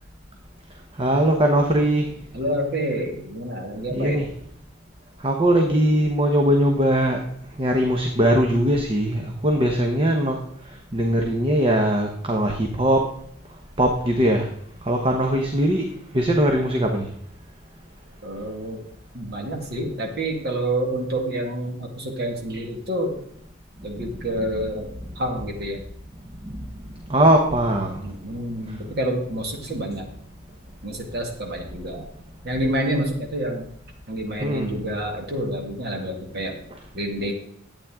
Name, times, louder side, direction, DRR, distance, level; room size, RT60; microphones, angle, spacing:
voice 1, 1.0-2.1 3.9-4.3 5.2-7.2 7.6-10.4 10.7-13.1 13.8-14.5 14.8-15.8 16.1-17.1 24.0-24.5 26.4-26.7 27.1-28.0 28.7-28.8 29.6-29.8 34.4-34.7 36.7-36.8, right 1 dB, 25° right, 2 dB, 1.0 m, -21 dB
voice 2, 2.3-4.2 18.2-18.8 19.1-23.2 23.8-24.9 25.2-25.8 28.0-30.1 30.8-32.0 32.4-33.7 34.1-36.6 36.9-37.3, right 1 dB, 50° right, 1 dB, 2.0 m, -28 dB
12.0 x 8.7 x 3.6 m, 0.67 s
head